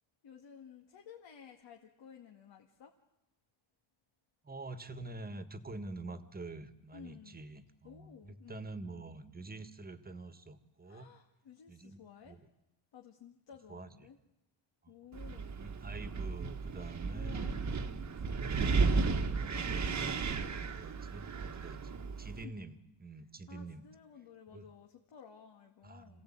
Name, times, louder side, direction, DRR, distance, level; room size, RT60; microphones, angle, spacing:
voice 1, 0.2-2.9 6.9-7.4 7.8-8.6 10.8-12.4 12.9-14.2 14.9-15.6 17.1-18.3 19.9-20.3 22.4-22.6 23.5-26.2, left 8 dB, 60° left, 2 dB, 2.2 m, -54 dB
voice 2, 4.4-11.1 11.7-12.4 13.7-14.1 14.8-14.9 15.6-17.6 19.2-23.8 24.5-24.7 25.8-26.2, right 2 dB, 20° right, 11 dB, 1.6 m, -47 dB
Wind, 15.1-22.4, right 4 dB, 35° right, 1.4 m, -34 dB
26.0 x 17.0 x 8.8 m, 0.96 s
cardioid pair, 110°, 47 cm